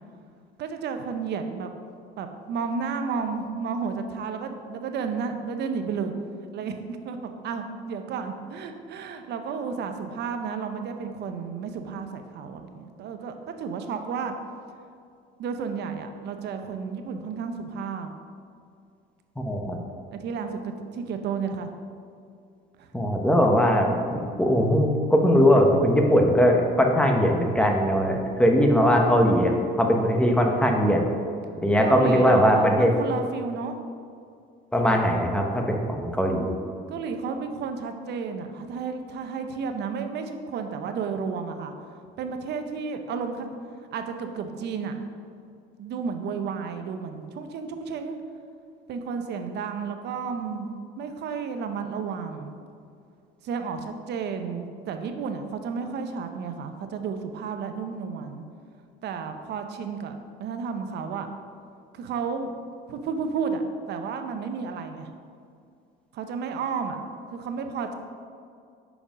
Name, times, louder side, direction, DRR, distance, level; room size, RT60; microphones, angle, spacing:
voice 1, 0.6-1.7 2.2-6.1 6.5-14.3 15.4-18.1 20.1-21.7 22.8-22.9 31.8-33.8 36.9-41.7 42.2-43.5 43.9-45.0 45.8-48.2 48.9-50.7 51.0-52.5 53.4-58.4 59.0-61.3 61.9-62.6 62.9-63.6 63.9-65.1 66.1-67.0 67.3-68.0, right 5 dB, 60° right, 6 dB, 0.7 m, -32 dB
voice 2, 19.4-19.8 22.9-31.0 31.6-32.9 34.7-36.5, equal, 5° left, 2 dB, 0.9 m, -20 dB
5.5 x 5.0 x 5.0 m, 2.3 s
cardioid pair, 100°, 19 cm